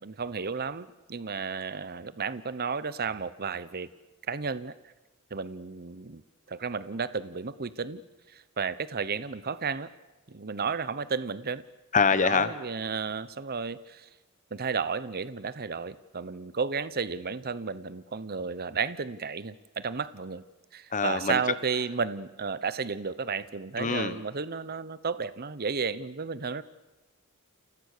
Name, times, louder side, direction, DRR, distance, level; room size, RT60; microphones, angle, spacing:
voice 1, 0.0-3.9 4.3-4.7 5.3-6.2 6.5-8.0 8.3-9.9 10.3-11.6 12.1-14.1 14.5-20.4 20.7-26.6, right 5 dB, 45° right, 15 dB, 0.9 m, -33 dB
voice 2, 11.9-12.5 20.9-21.4 23.8-24.1, left 5 dB, 35° left, 13 dB, 1.0 m, -24 dB
29.5 x 28.5 x 6.7 m, 1.1 s
head